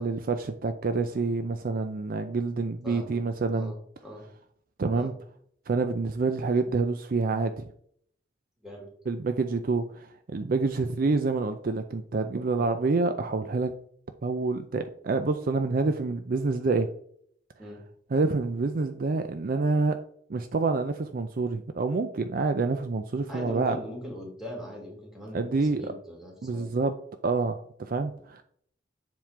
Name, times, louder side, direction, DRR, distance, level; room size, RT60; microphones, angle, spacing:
voice 1, 0.0-3.7 4.8-5.1 5.7-7.6 9.1-13.7 14.2-16.9 18.1-20.0 20.3-23.8 25.3-25.8 26.4-26.9 27.2-28.4, right 3 dB, 55° right, 8 dB, 0.5 m, -27 dB
voice 2, 2.8-3.2 3.5-4.2 4.9-5.1 8.6-8.9 12.6-12.7 17.6-17.8 23.3-26.7, equal, 5° right, -1 dB, 2.2 m, -40 dB
7.4 x 3.7 x 4.4 m, 0.62 s
head